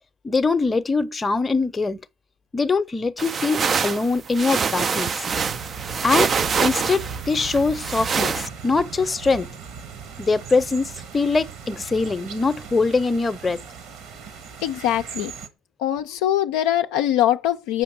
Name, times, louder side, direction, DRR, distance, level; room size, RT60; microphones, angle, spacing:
voice 1, 0.2-2.0 2.5-5.2 6.0-6.3 6.6-9.5 10.2-13.6, left 4 dB, 25° left, 0.7 m, -23 dB
fabric movement sweater, 3.2-8.5, right 6 dB, 35° right, 0.4 m, -25 dB
sound 1, 5.3-15.5, right 6 dB, 60° right, 1.4 m, -38 dB
voice 2, 14.6-15.3 15.8-17.8, left 12 dB, 65° left, 0.4 m, -22 dB
7.9 x 5.7 x 6.3 m
figure-of-eight pair, 55°, 0 cm